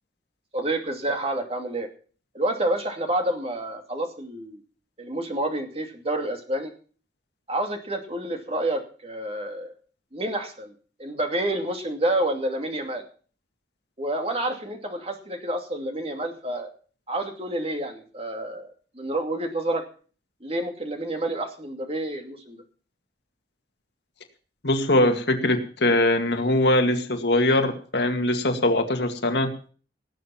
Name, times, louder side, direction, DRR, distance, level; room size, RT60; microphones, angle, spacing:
voice 1, 0.5-1.9 2.3-4.6 5.0-6.7 7.5-9.7 10.1-10.7 11.0-13.0 14.0-16.7 17.1-19.8 20.4-22.6, right 1 dB, 35° right, 4 dB, 2.5 m, -29 dB
voice 2, 24.6-29.5, left 1 dB, 65° left, 5 dB, 2.2 m, -22 dB
18.0 x 7.5 x 7.1 m, 0.41 s
head